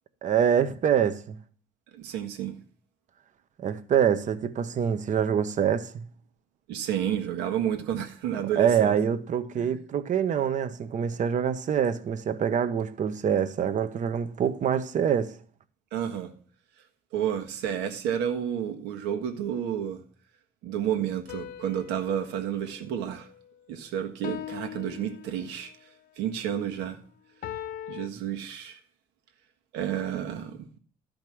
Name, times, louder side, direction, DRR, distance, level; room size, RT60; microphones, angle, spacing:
voice 1, 0.2-1.4 3.6-6.0 8.6-15.3, right 8 dB, 45° right, 0.9 m, -25 dB
voice 2, 1.9-2.6 6.7-8.9 9.6-9.8 15.9-16.3 17.1-20.0 20.6-23.3 23.7-25.7 26.2-27.0 27.9-28.8 29.7-30.6, right 9 dB, 90° right, 1.6 m, -30 dB
sound 1, 21.3-23.7 24.2-25.8 27.4-28.1, left 11 dB, 55° left, 0.5 m, -41 dB
12.5 x 5.2 x 6.2 m
cardioid pair, 110°, 17 cm